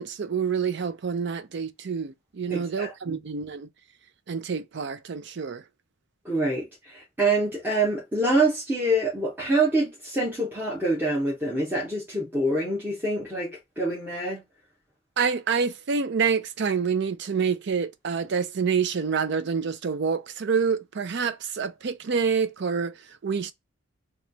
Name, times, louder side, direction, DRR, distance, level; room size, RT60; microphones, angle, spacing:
voice 1, 0.0-3.7 4.3-5.6 15.2-23.5, right 6 dB, 55° right, 0.4 m, -27 dB
voice 2, 2.5-3.2 6.2-14.4, right 2 dB, 10° right, 0.8 m, -26 dB
3.1 x 2.3 x 3.8 m
head